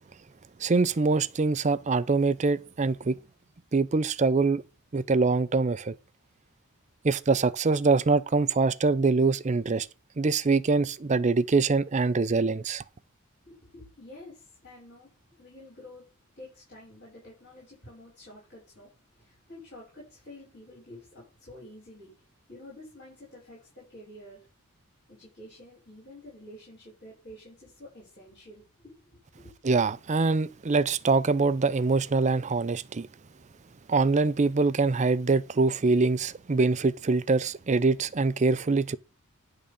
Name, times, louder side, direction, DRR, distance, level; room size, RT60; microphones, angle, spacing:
voice 1, 0.6-3.2 3.7-4.6 4.9-6.0 7.0-9.9 10.2-12.8 29.6-33.1 33.9-39.0, right 3 dB, 30° right, 0.5 m, -24 dB
voice 2, 13.5-15.1 15.4-16.0 16.4-18.9 19.2-22.1 22.5-24.4 25.1-29.0 29.4-29.5, left 1 dB, 50° left, 6.1 m, -49 dB
10.5 x 3.8 x 6.9 m
head